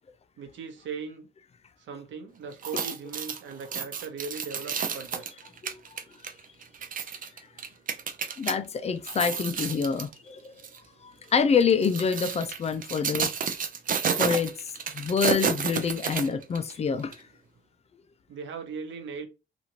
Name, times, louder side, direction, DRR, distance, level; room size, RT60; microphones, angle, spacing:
voice 1, 0.4-1.3 1.8-5.3 18.3-19.3, right 5 dB, 70° right, 1.0 m, -38 dB
sound 1, 2.5-8.5 9.0-10.1 10.6-10.8 11.6-16.7 17.1-17.2, right 6 dB, 45° right, 0.6 m, -31 dB
voice 2, 8.4-10.5 11.3-13.3 14.2-14.5 14.9-17.1, left 6 dB, 30° left, 0.4 m, -26 dB
3.0 x 2.5 x 2.8 m
cardioid pair, 90°, 20 cm